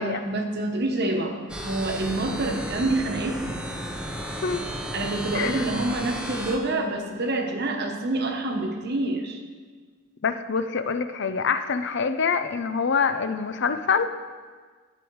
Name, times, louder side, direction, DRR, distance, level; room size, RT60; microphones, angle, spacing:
voice 1, 0.0-3.6 4.9-9.4, right 2 dB, 50° right, 4 dB, 1.2 m, -27 dB
sound 1, 1.5-6.6, equal, 5° right, 0.8 m, -33 dB
voice 2, 4.3-4.6 5.3-5.6 10.2-14.1, left 5 dB, 55° left, 10 dB, 0.6 m, -25 dB
11.5 x 8.8 x 4.7 m, 1.5 s
head